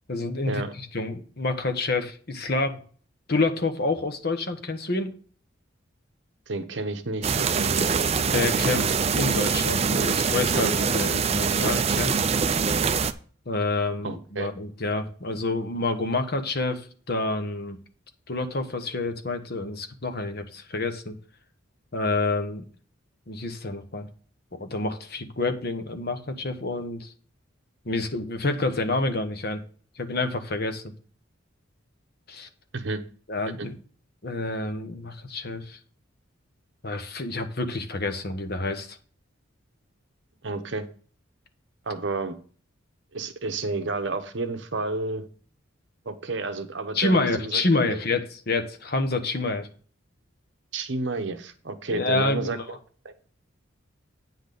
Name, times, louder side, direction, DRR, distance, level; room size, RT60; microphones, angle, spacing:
voice 1, 0.1-2.8 3.3-5.1 8.0-12.2 13.5-17.8 18.3-21.2 21.9-22.6 23.3-24.1 24.5-27.1 27.8-29.6 30.0-30.9 32.3-32.5 33.3-33.8 34.2-35.8 36.8-39.0 46.9-49.7 51.9-52.6, left 2 dB, 50° left, 7 dB, 1.1 m, -28 dB
voice 2, 6.5-7.9 14.0-14.5 32.7-33.0 33.6-33.7 40.4-40.9 41.9-42.4 43.1-45.2 46.0-47.6 47.9-48.0 50.7-52.8 53.0-53.1, right 3 dB, 60° right, 7 dB, 0.9 m, -31 dB
sound 1, 7.2-13.1, right 5 dB, 30° right, 0.4 m, -24 dB
9.1 x 4.0 x 6.8 m, 0.42 s
head